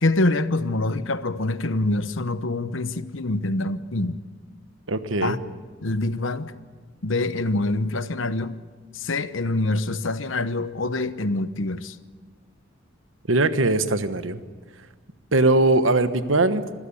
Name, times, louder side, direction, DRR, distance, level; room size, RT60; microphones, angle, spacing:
voice 1, 0.0-4.2 5.2-5.4 5.8-6.5 7.0-8.6 8.9-12.0, left 2 dB, 80° left, 1.0 m, -25 dB
voice 2, 4.9-5.4 13.3-14.4 15.3-16.6, right 2 dB, 85° right, 1.3 m, -20 dB
26.0 x 16.0 x 8.5 m
head